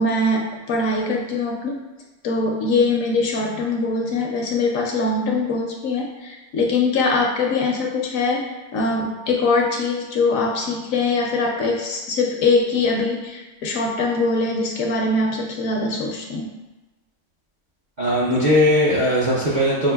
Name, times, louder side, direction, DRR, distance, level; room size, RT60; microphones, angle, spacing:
voice 1, 0.0-1.8 2.2-16.5, left 3 dB, 70° left, 1 dB, 0.9 m, -22 dB
voice 2, 18.0-19.9, equal, 50° right, -7 dB, 0.5 m, -19 dB
5.9 x 2.4 x 2.2 m, 1.1 s
omnidirectional pair, 1.6 m